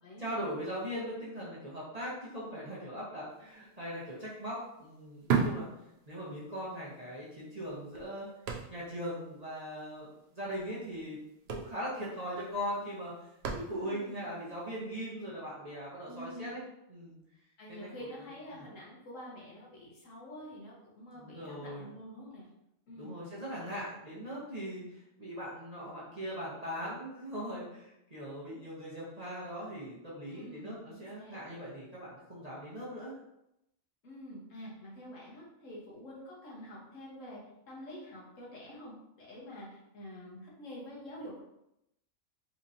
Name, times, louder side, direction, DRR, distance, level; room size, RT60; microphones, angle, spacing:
voice 1, 0.2-5.7 6.1-8.3 8.7-10.1 10.3-11.2 11.5-13.1 13.5-16.6 16.9-17.2 17.7-17.9 18.5-18.7 21.1-21.9 22.9-33.2, equal, 30° right, -8 dB, 0.9 m, -40 dB
sound 1, 3.5-3.6 3.9-6.5 6.9-7.0 7.6-9.1 9.4-9.5 9.7-10.0 10.9-11.0 11.3-14.1 14.7-14.8, right 6 dB, 60° right, 0.7 m, -35 dB
voice 2, 13.7-14.3 16.1-16.6 17.6-22.5 22.9-23.2 30.2-31.4 34.0-41.4, equal, 65° left, -4 dB, 1.4 m, -47 dB
4.3 x 2.9 x 2.6 m, 0.84 s
omnidirectional pair, 1.5 m